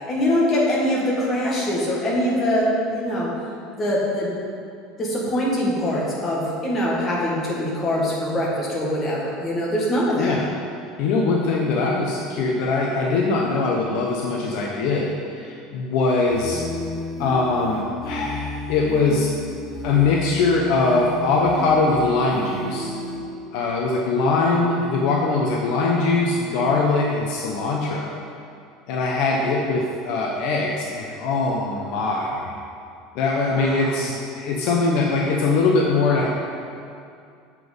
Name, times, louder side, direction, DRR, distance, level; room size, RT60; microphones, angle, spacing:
voice 1, 0.0-3.3 3.8-4.3 5.0-10.4 33.4-34.1, left 1 dB, 20° left, -5 dB, 1.7 m, -23 dB
voice 2, 11.0-16.6 17.2-19.3 19.8-22.9 23.5-28.2 28.9-32.5 33.1-36.3, left 3 dB, 55° left, -2 dB, 0.9 m, -22 dB
sound 1, 16.3-23.2, left 2 dB, 5° left, 1.5 m, -33 dB
8.0 x 5.9 x 5.3 m, 2.4 s
cardioid pair, 175°, 0 cm